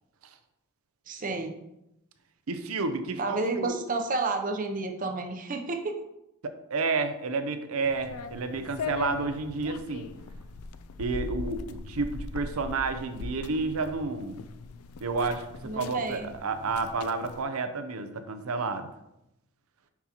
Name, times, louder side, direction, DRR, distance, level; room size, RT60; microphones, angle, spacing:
voice 1, 1.1-1.5 3.2-5.9 15.6-16.3, right 3 dB, 40° right, 4 dB, 0.7 m, -31 dB
voice 2, 2.5-3.7 6.4-10.1 11.0-14.4 15.0-18.9, right 4 dB, 75° right, 9 dB, 0.6 m, -30 dB
sound 1, 7.8-17.4, left 4 dB, 85° left, 0.4 m, -40 dB
6.0 x 5.6 x 2.9 m, 0.87 s
head